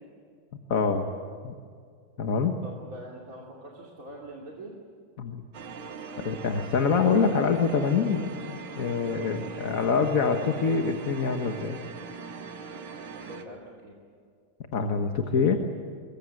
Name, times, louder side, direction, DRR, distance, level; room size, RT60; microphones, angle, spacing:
voice 1, 0.7-1.1 1.4-1.5 2.2-2.6 5.2-5.4 6.2-11.8 14.7-15.6, left 5 dB, 45° left, 5 dB, 1.7 m, -25 dB
voice 2, 2.6-4.7 9.1-9.5 13.3-14.0, right 1 dB, 40° right, -2 dB, 3.1 m, -43 dB
sound 1, 5.5-13.4, right 5 dB, 80° right, 2.3 m, -41 dB
24.0 x 22.0 x 9.7 m, 2.1 s
omnidirectional pair, 2.3 m